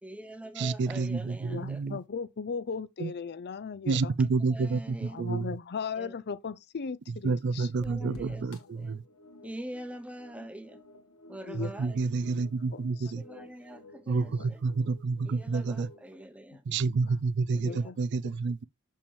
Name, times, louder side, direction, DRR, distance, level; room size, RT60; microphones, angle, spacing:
voice 1, 0.0-1.8 4.5-5.2 6.0-6.1 7.8-8.4 8.8-9.0 9.4-10.8 11.3-12.0 13.1-14.6 15.3-16.6 17.5-17.9, right 1 dB, 5° right, 0.8 m, -44 dB
voice 2, 0.6-2.0 3.0-3.1 3.9-5.5 7.2-9.0 11.5-13.2 14.1-15.9 16.7-18.6, right 4 dB, 55° right, 0.4 m, -29 dB
voice 3, 1.5-4.1 5.1-7.7 8.0-8.2 11.5-11.7 12.7-13.1 14.4-14.5 17.5-18.0, left 5 dB, 50° left, 0.5 m, -37 dB
sound 1, 7.8-16.2, left 1 dB, 90° left, 1.7 m, -53 dB
6.9 x 5.5 x 3.3 m
head